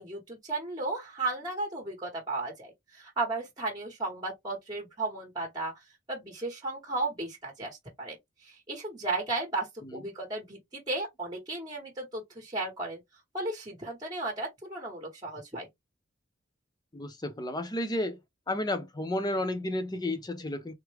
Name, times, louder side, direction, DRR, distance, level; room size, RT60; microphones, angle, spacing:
voice 1, 0.0-5.7 6.1-8.2 8.4-10.6 10.9-13.0 13.3-15.7, right 2 dB, 20° right, 0.9 m, -34 dB
voice 2, 16.9-18.2 18.5-20.7, left 1 dB, 20° left, 0.7 m, -32 dB
3.5 x 2.1 x 3.2 m
head